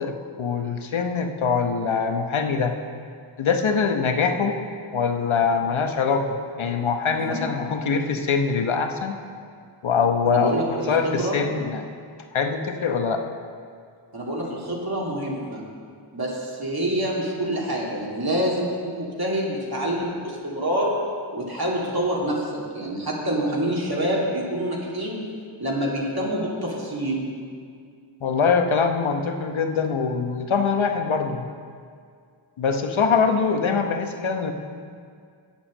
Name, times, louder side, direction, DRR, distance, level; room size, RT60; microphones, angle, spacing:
voice 1, 0.0-2.7 3.4-4.6 4.9-6.3 6.6-9.2 9.8-11.9 12.3-13.2 28.2-31.5 32.6-34.5, left 5 dB, 70° left, 5 dB, 1.1 m, -23 dB
voice 2, 10.2-11.4 14.1-15.6 16.1-20.9 21.3-25.2 25.6-27.3, right 1 dB, 45° right, -4 dB, 2.5 m, -26 dB
8.8 x 7.4 x 7.4 m, 2.2 s
cardioid pair, 55°, 49 cm